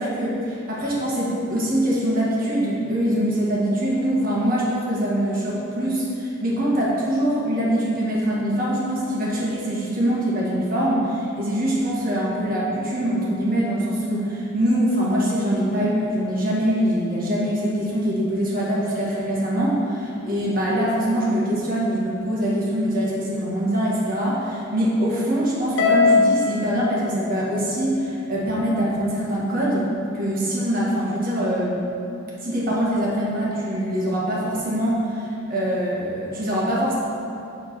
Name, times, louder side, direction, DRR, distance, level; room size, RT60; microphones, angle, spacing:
voice 1, 0.0-29.9 30.1-31.8 32.4-36.9, equal, 45° right, -6 dB, 1.7 m, -23 dB
Harp, 25.8-28.2, left 4 dB, 65° left, 0.9 m, -21 dB
7.5 x 3.9 x 6.0 m, 2.7 s
head